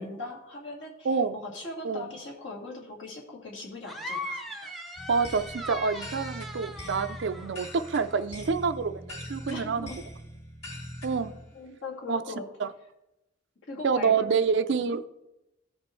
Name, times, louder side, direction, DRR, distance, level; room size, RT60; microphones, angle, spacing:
voice 1, 0.0-4.4 9.5-10.0 11.5-12.5 13.7-14.4, left 2 dB, 70° left, -2 dB, 2.2 m, -40 dB
voice 2, 1.0-1.4 1.8-2.0 4.6-4.7 5.1-9.9 11.0-11.3 12.1-12.2 12.6-12.7 13.8-15.0, right 5 dB, 60° right, 12 dB, 0.4 m, -27 dB
sound 1, 3.9-8.2, left 1 dB, ahead, 0.6 m, -39 dB
sound 2, 5.0-11.4, left 1 dB, 35° left, 2.5 m, -42 dB
15.0 x 5.2 x 3.2 m, 0.93 s
head